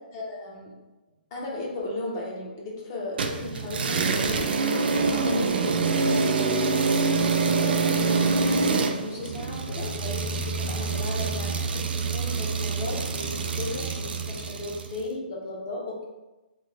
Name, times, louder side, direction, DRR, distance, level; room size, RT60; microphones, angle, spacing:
voice 1, 0.1-0.7 1.3-4.5 5.1-7.0 7.3-16.0, left 2 dB, 25° left, -2 dB, 0.5 m, -36 dB
sound 1, 3.2-14.9, right 4 dB, 80° right, 0.4 m, -26 dB
3.0 x 2.1 x 3.8 m, 1.1 s
hypercardioid pair, 180°, 5 cm